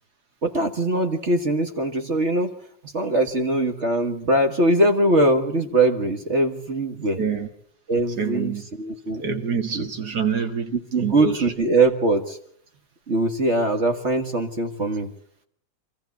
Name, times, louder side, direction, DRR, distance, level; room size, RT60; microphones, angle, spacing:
voice 1, 0.4-2.5 2.9-7.2 7.9-9.2 9.7-9.9 10.9-12.4 13.1-15.1, right 2 dB, 40° right, 5 dB, 1.7 m, -22 dB
voice 2, 7.2-7.5 8.2-8.6 9.2-11.4, right 6 dB, 60° right, 6 dB, 2.3 m, -26 dB
26.0 x 14.5 x 8.2 m, 0.66 s
omnidirectional pair, 2.0 m